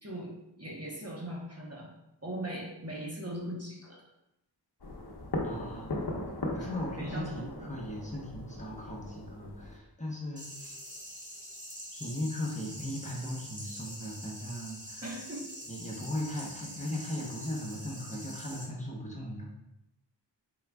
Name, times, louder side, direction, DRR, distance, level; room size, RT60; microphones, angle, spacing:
voice 1, 0.0-1.9 2.2-4.0 6.6-6.7 7.0-7.5 15.0-15.5, right 1 dB, 35° right, -3 dB, 0.9 m, -39 dB
sound 1, 4.8-9.8, left 1 dB, 60° left, 0.8 m, -38 dB
voice 2, 5.4-5.9 6.5-10.8 11.9-15.0 15.6-19.6, left 1 dB, 15° left, -3 dB, 0.9 m, -38 dB
sound 2, 10.4-18.6, equal, 20° right, 1.3 m, -45 dB
4.6 x 3.9 x 2.3 m, 0.88 s
wide cardioid pair, 50°, 43 cm